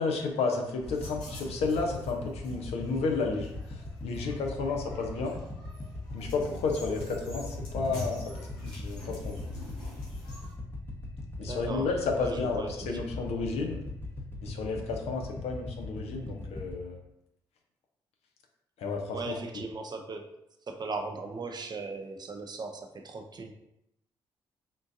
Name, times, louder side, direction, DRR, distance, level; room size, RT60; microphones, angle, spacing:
voice 1, 0.0-5.4 6.1-8.2 8.6-9.4 11.4-13.8 14.4-17.0 18.8-19.4, left 4 dB, 65° left, 2 dB, 0.6 m, -32 dB
sound 1, 0.8-10.5, left 2 dB, 85° left, 1.1 m, -46 dB
sound 2, 0.8-16.7, left 2 dB, 20° left, 0.8 m, -40 dB
voice 2, 11.4-13.0 19.1-20.3 20.7-23.5, right 3 dB, 40° right, 5 dB, 0.5 m, -38 dB
3.7 x 2.5 x 2.5 m, 0.83 s
hypercardioid pair, 45°, 11 cm